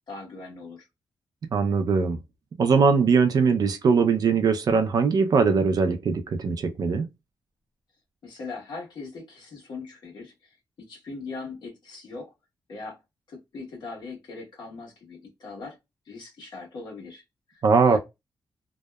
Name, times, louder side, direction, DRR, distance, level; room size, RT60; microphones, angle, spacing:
voice 1, 0.1-0.9 8.2-10.5 10.8-12.3 12.7-13.0 13.3-15.8 16.1-17.2 17.5-17.6 17.9-18.0, left 3 dB, 70° left, 1.2 m, -40 dB
voice 2, 1.5-2.2 2.6-7.1 17.6-18.0, right 5 dB, 55° right, 0.4 m, -21 dB
2.7 x 2.0 x 2.2 m
wide cardioid pair, 150°, 8 cm